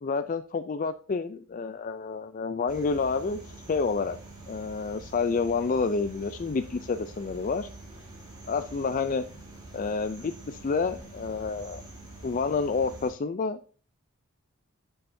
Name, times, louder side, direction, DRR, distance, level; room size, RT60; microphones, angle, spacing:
voice 1, 0.0-4.2 4.5-7.7 8.5-9.3 9.7-11.8 12.2-13.6, left 4 dB, 35° left, 10 dB, 0.4 m, -29 dB
sound 1, 2.7-13.1, right 2 dB, 20° right, 3.3 m, -46 dB
11.0 x 7.0 x 2.7 m, 0.41 s
head